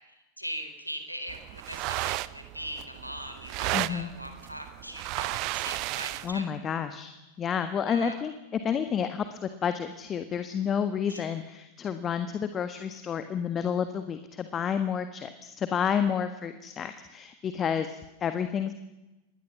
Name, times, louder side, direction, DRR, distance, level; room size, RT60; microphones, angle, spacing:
voice 1, 0.1-6.6 7.9-8.2 11.1-11.3, equal, 90° right, 6 dB, 4.2 m, -40 dB
sound 1, 1.3-6.4, right 19 dB, 40° right, 0.9 m, -34 dB
voice 2, 3.7-4.1 6.2-18.7, left 7 dB, 25° left, 10 dB, 1.6 m, -30 dB
27.0 x 21.0 x 7.2 m, 1.0 s
figure-of-eight pair, 90°, 0 cm